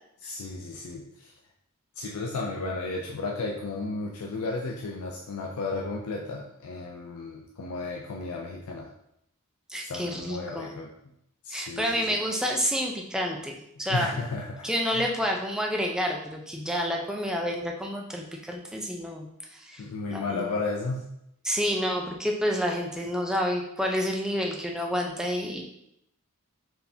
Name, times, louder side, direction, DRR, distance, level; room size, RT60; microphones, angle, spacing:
voice 1, 0.2-1.3 2.0-8.9 9.8-10.9 11.4-12.2 13.9-14.7 14.9-15.1 19.8-21.1, left 3 dB, 70° left, -1 dB, 0.5 m, -33 dB
voice 2, 9.7-10.7 11.5-13.5 13.8-14.2 14.6-19.8 20.1-20.5 21.4-25.6, equal, 5° right, 0 dB, 0.4 m, -29 dB
4.5 x 3.4 x 2.7 m, 0.77 s
head